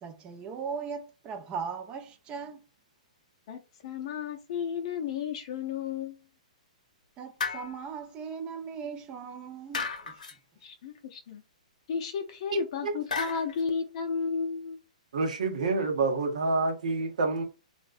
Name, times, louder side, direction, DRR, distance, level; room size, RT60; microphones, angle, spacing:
voice 1, 0.0-2.6 7.2-10.2, right 6 dB, 25° right, 0.4 m, -38 dB
voice 2, 3.5-6.2 10.6-11.4 11.9-14.8, left 6 dB, 50° left, 0.5 m, -33 dB
sound 1, 7.4-8.0 9.7-10.4 13.1-13.6, left 4 dB, 90° left, 0.6 m, -34 dB
voice 3, 12.5-12.9 15.1-17.4, right 3 dB, 75° right, 0.8 m, -28 dB
2.5 x 2.1 x 2.4 m
hypercardioid pair, 135°, 4 cm